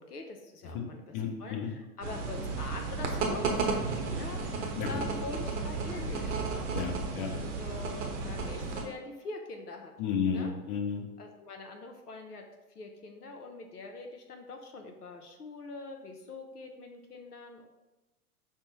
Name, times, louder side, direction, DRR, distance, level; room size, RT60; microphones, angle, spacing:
voice 1, 0.0-6.7 7.3-9.9 10.3-10.5 11.2-12.4 12.7-17.7, left 3 dB, 90° left, 3 dB, 0.6 m, -44 dB
voice 2, 1.1-1.7 4.7-5.0 6.7-7.3 10.0-11.1, left 7 dB, 35° left, 2 dB, 0.6 m, -32 dB
sound 1, 2.0-8.8, right 4 dB, 50° right, 0.7 m, -33 dB
5.2 x 2.1 x 2.9 m, 1.1 s
figure-of-eight pair, 95°, 45 cm